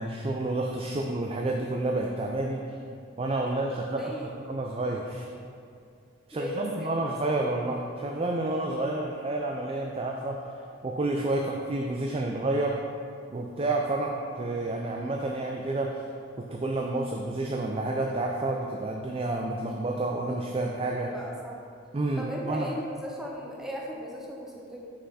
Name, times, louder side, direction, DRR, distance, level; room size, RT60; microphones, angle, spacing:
voice 1, 0.0-2.6 3.2-4.1 4.5-5.3 6.3-10.4 10.8-12.8 13.3-16.0 16.4-21.1 21.9-22.7, right 2 dB, 30° right, 0 dB, 0.3 m, -29 dB
voice 2, 3.9-4.3 6.3-7.2 21.0-21.6 22.2-24.9, equal, ahead, -2 dB, 0.7 m, -37 dB
5.7 x 5.5 x 4.1 m, 2.4 s
head